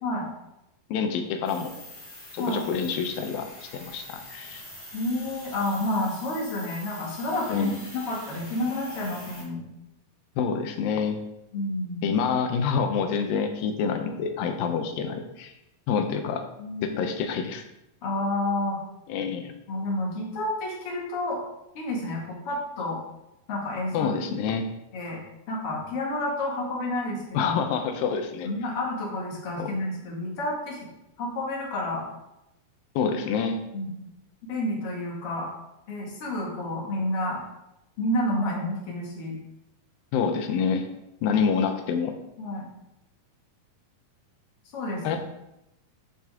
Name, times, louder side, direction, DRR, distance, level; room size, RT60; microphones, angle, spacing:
voice 1, 0.9-1.7 2.3-3.5 3.7-4.6 7.5-7.8 10.4-11.2 12.0-15.5 15.9-16.4 16.8-17.6 19.1-19.5 23.9-24.7 27.3-28.5 29.6-29.7 33.0-33.6 40.1-40.9 41.2-42.1 45.0-45.2, left 6 dB, 85° left, 6 dB, 2.6 m, -27 dB
sound 1, 1.4-9.4, left 1 dB, 60° left, 5.3 m, -44 dB
voice 2, 4.9-9.6 11.5-12.1 16.6-17.0 18.0-18.8 19.7-21.4 21.7-23.0 23.5-24.1 24.9-25.2 25.5-27.5 28.4-30.8 31.2-32.0 33.7-34.1 34.5-35.5 35.9-37.4 38.0-39.4 42.4-42.7 44.7-45.2, left 1 dB, 45° left, -3 dB, 2.7 m, -30 dB
12.5 x 6.0 x 3.6 m, 0.87 s
omnidirectional pair, 4.0 m